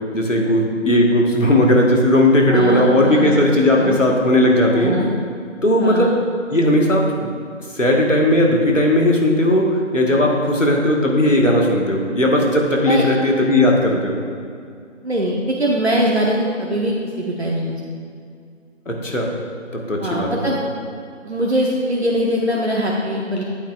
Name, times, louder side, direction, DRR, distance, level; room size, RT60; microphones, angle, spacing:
voice 1, 0.1-5.0 5.6-6.1 6.5-7.3 7.7-14.2 18.9-19.3 19.7-20.4, left 1 dB, 80° left, 0 dB, 1.6 m, -16 dB
voice 2, 2.5-3.4 3.7-4.0 4.7-5.1 5.8-6.1 12.8-13.1 15.0-17.8 20.0-20.6 21.2-23.4, equal, 60° right, -3 dB, 0.9 m, -22 dB
9.3 x 8.5 x 2.4 m, 2.3 s
figure-of-eight pair, 170°, 38 cm